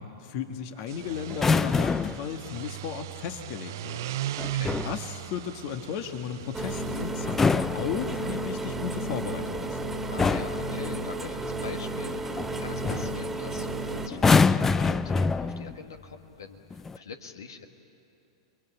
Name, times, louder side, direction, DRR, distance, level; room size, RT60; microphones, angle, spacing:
voice 1, 0.0-4.2 4.8-9.8, left 8 dB, 50° left, 6 dB, 1.6 m, -35 dB
sound 1, 0.8-7.1, right 13 dB, 60° right, 0.6 m, -37 dB
sound 2, 1.3-2.3 4.4-5.0 7.2-8.5 9.6-9.8 10.2-10.7 12.4-12.5 12.8-13.2 14.1-15.8 16.7-17.0, left 4 dB, 15° left, 0.5 m, -25 dB
voice 2, 4.4-4.8 10.1-17.7, left 5 dB, 70° left, 6 dB, 1.8 m, -43 dB
sound 3, 6.5-14.1, right 2 dB, 10° right, 2.1 m, -32 dB
29.5 x 22.0 x 9.0 m, 2.8 s
figure-of-eight pair, 100°, 2 cm